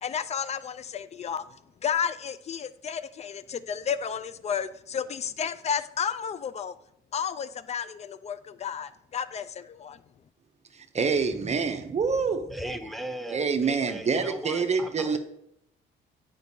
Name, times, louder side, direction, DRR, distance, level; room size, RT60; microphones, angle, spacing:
voice 1, 0.0-1.5 1.8-6.7 7.1-10.0, left 7 dB, 35° left, 15 dB, 0.4 m, -32 dB
voice 2, 10.7-12.5 13.3-15.2, right 5 dB, 35° right, 7 dB, 0.7 m, -26 dB
voice 3, 12.5-15.2, right 1 dB, ahead, 5 dB, 0.7 m, -38 dB
8.9 x 5.2 x 2.7 m, 0.76 s
cardioid pair, 90°, 20 cm